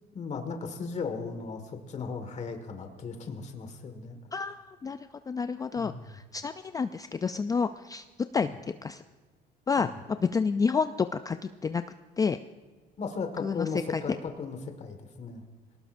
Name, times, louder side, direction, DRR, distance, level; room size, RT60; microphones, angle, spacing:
voice 1, 0.1-4.2 5.7-6.1 8.4-8.6 9.8-9.9 13.0-15.4, left 5 dB, 45° left, 6 dB, 1.7 m, -36 dB
voice 2, 4.3-5.0 5.3-8.1 8.3-8.5 8.8-9.0 9.7-11.8 12.2-12.4 13.4-14.0, left 5 dB, 20° left, 10 dB, 0.4 m, -29 dB
21.5 x 18.5 x 2.6 m, 1.3 s
cardioid pair, 110°, 17 cm